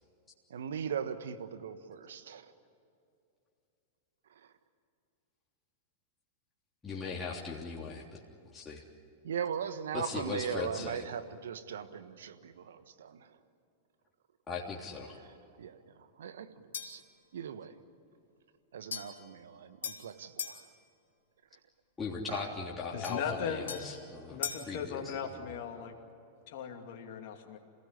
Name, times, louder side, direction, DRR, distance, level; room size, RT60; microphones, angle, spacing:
voice 1, 0.5-2.5 4.3-4.5 9.2-13.4 15.1-17.0 17.3-17.8 18.7-20.7 21.5-21.6 22.3-22.5, right 7 dB, 70° right, 10 dB, 1.4 m, -40 dB
voice 2, 6.8-8.2 8.5-8.8 9.9-11.0 14.5-15.2 22.0-24.4 24.7-25.2, left 4 dB, 20° left, -4 dB, 3.3 m, -38 dB
sound 1, 16.7-17.1 18.9-20.6 23.0-24.8, left 7 dB, 70° left, 2.8 m, -41 dB
voice 3, 22.9-23.8 24.3-25.9 26.5-27.6, left 7 dB, 55° left, 3 dB, 2.6 m, -38 dB
27.5 x 17.0 x 9.9 m, 2.7 s
figure-of-eight pair, 95°, 0 cm